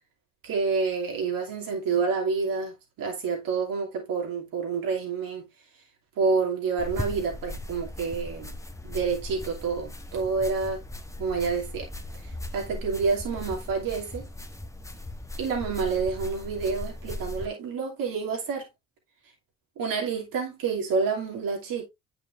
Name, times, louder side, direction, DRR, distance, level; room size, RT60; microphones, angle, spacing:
voice 1, 0.4-5.5 6.2-8.5 8.8-10.8 11.2-11.9 12.5-14.3 15.4-18.7 19.8-21.8, right 5 dB, 65° right, 2.8 m, -28 dB
sound 1, 6.8-17.5, left 1 dB, 10° left, 1.1 m, -38 dB
8.9 x 5.8 x 2.6 m
hypercardioid pair, 45°, 37 cm